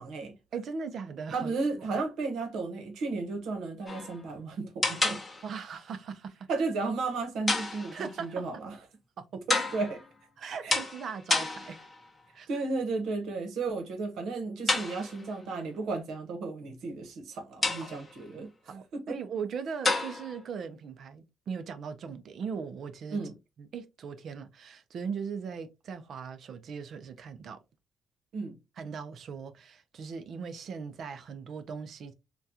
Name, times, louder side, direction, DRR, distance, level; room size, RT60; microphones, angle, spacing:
voice 1, 0.0-0.3 1.3-5.2 6.5-8.8 9.5-10.0 10.6-10.7 12.5-19.1 23.1-23.3 28.3-28.6, right 3 dB, 80° right, 0.8 m, -34 dB
voice 2, 0.5-1.9 5.4-6.5 7.9-8.4 9.2-9.4 10.4-11.9 12.3-12.6 17.8-17.9 18.6-23.2 23.6-27.6 28.8-32.1, right 6 dB, 55° right, 0.4 m, -39 dB
sound 1, 3.9-4.2 4.8-5.7 7.5-8.3 9.5-10.1 10.7-12.1 14.7-15.4 17.6-18.2 19.8-20.4, left 3 dB, 20° left, 0.7 m, -30 dB
3.5 x 2.2 x 2.7 m
cardioid pair, 145°, 0 cm